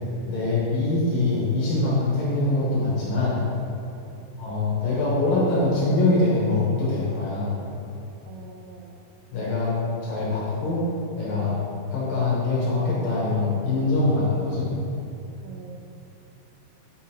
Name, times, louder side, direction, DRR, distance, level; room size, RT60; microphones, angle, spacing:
voice 1, 0.3-3.4 4.4-7.6 9.3-10.9 11.1-11.6 11.9-14.7, left 2 dB, 65° left, -7 dB, 2.4 m, -23 dB
voice 2, 8.3-9.0 15.4-15.8, right 5 dB, 90° right, -1 dB, 2.9 m, -44 dB
8.9 x 5.9 x 2.9 m, 2.7 s
omnidirectional pair, 5.1 m